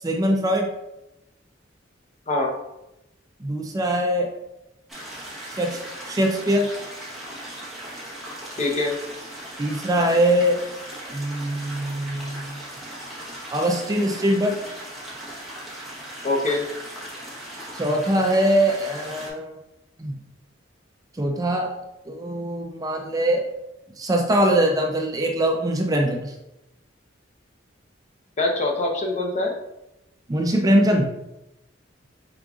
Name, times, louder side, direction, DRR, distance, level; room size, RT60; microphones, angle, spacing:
voice 1, 0.0-0.7 3.4-4.3 5.5-5.8 6.1-6.7 9.6-10.6 11.1-12.6 13.5-14.6 17.7-19.6 20.0-20.1 21.2-21.7 22.1-23.4 24.0-26.3 30.3-31.1, right 1 dB, 20° right, 2 dB, 0.4 m, -22 dB
sound 1, 4.9-19.3, right 1 dB, ahead, 1.1 m, -38 dB
voice 2, 8.6-9.0 16.2-16.6 28.4-29.5, left 2 dB, 40° left, 0 dB, 0.7 m, -23 dB
4.9 x 3.6 x 2.4 m, 0.89 s
head